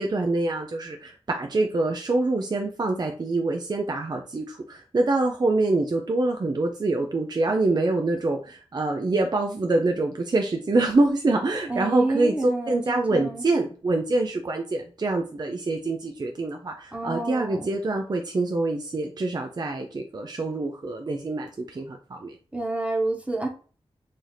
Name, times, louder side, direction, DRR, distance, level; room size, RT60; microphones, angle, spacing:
voice 1, 0.0-22.3, right 2 dB, 40° right, 4 dB, 0.4 m, -25 dB
voice 2, 11.7-13.4 16.9-17.7 22.5-23.5, right 2 dB, 10° right, 0 dB, 1.0 m, -28 dB
3.2 x 2.7 x 3.9 m, 0.39 s
wide cardioid pair, 80°, 11 cm